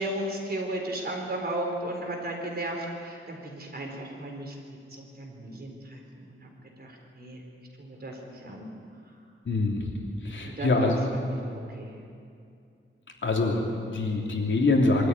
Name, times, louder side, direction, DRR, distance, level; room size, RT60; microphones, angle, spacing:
voice 1, 0.0-6.5 6.8-7.4 7.8-8.7 10.4-12.0, right 1 dB, 50° right, 0 dB, 4.2 m, -35 dB
voice 2, 9.4-10.0 10.2-11.0 13.2-15.1, left 2 dB, 65° left, 0 dB, 3.1 m, -25 dB
23.5 x 13.5 x 9.6 m, 2.4 s
wide cardioid pair, 125°, 21 cm